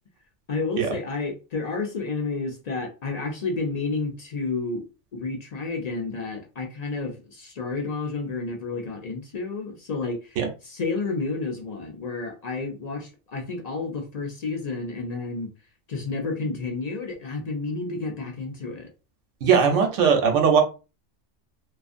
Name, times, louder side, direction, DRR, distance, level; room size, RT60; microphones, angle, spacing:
voice 1, 0.5-4.8 5.1-10.4 10.6-15.5 15.9-18.9, left 3 dB, 60° left, 0.4 m, -30 dB
voice 2, 19.4-20.6, right 6 dB, 85° right, 1.0 m, -19 dB
2.5 x 2.4 x 2.4 m
omnidirectional pair, 1.2 m